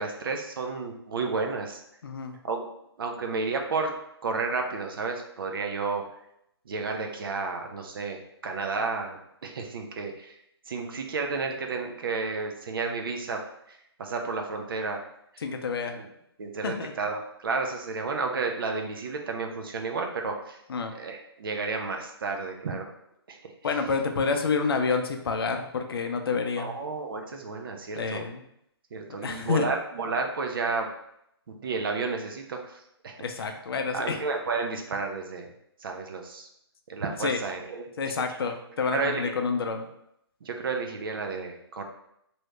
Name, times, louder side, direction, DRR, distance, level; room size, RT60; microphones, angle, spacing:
voice 1, 0.0-1.8 2.4-2.7 3.0-3.9 4.2-6.0 6.7-10.4 10.7-13.4 13.7-15.0 16.0-16.1 16.4-20.6 20.9-22.9 23.3-23.5 26.6-28.3 28.9-30.9 31.5-33.5 33.9-35.5 35.8-36.5 36.9-38.2 38.9-39.3 40.4-41.8, right 4 dB, 55° right, 3 dB, 0.6 m, -32 dB
voice 2, 2.0-2.4 15.4-16.0 16.6-16.9 20.7-20.9 23.6-26.8 28.0-28.4 29.2-29.7 33.2-34.2 37.2-37.4 38.0-39.8, left 5 dB, 60° left, 5 dB, 0.5 m, -28 dB
3.0 x 2.7 x 3.2 m, 0.77 s
hypercardioid pair, 145°, 14 cm